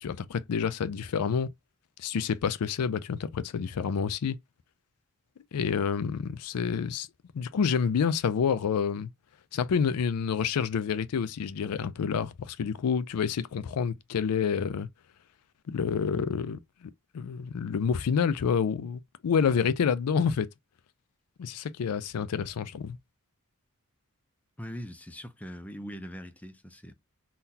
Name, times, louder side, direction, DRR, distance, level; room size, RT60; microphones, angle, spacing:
voice 1, 0.0-1.5 2.0-4.4 5.5-7.1 7.3-9.1 9.5-14.9 15.7-20.5 21.4-23.0, left 6 dB, 80° left, 0.4 m, -28 dB
voice 2, 24.6-26.9, equal, 5° left, 0.4 m, -41 dB
3.8 x 2.3 x 2.7 m
head